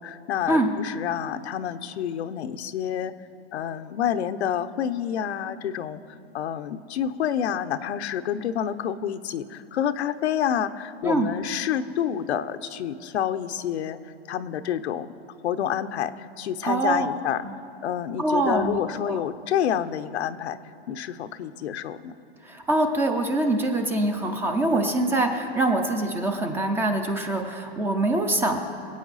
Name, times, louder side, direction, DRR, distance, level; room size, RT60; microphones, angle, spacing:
voice 1, 0.0-3.1 3.5-14.0 14.3-15.1 15.4-17.4 17.8-20.6 20.9-22.1, left 9 dB, 85° left, 10 dB, 0.8 m, -28 dB
voice 2, 16.6-17.1 17.4-17.5 18.2-18.8 19.1-19.2 22.4-28.6, right 2 dB, 5° right, 4 dB, 0.4 m, -24 dB
24.5 x 8.6 x 4.1 m, 2.7 s
supercardioid pair, 155°, 32 cm